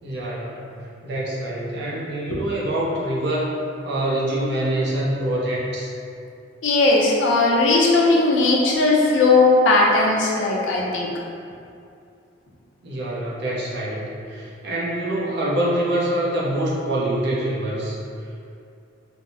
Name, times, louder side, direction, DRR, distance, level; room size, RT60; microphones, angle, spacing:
voice 1, 0.0-3.5 3.8-5.9 12.8-18.0, right 1 dB, 60° right, -5 dB, 0.6 m, -25 dB
voice 2, 6.6-11.1, left 3 dB, 75° left, -3 dB, 0.5 m, -17 dB
3.4 x 2.0 x 2.6 m, 2.4 s
head